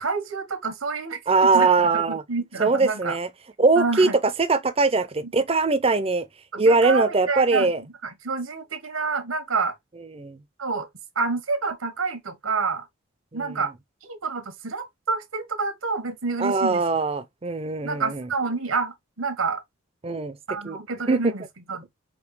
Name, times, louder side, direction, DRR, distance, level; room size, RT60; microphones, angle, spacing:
voice 1, 0.0-3.2 3.8-4.2 6.5-7.7 8.0-9.7 10.6-10.9 11.1-12.8 13.3-13.7 14.0-16.8 17.8-19.6 20.5-21.9, right 4 dB, 85° right, 1.3 m, -28 dB
voice 2, 1.3-2.2 2.6-3.3 3.6-6.3 6.6-7.8 10.1-10.4 13.3-13.6 16.4-18.3 20.0-20.4 20.6-20.8 21.1-21.3, right 3 dB, 30° right, 0.5 m, -21 dB
5.1 x 2.8 x 3.1 m
head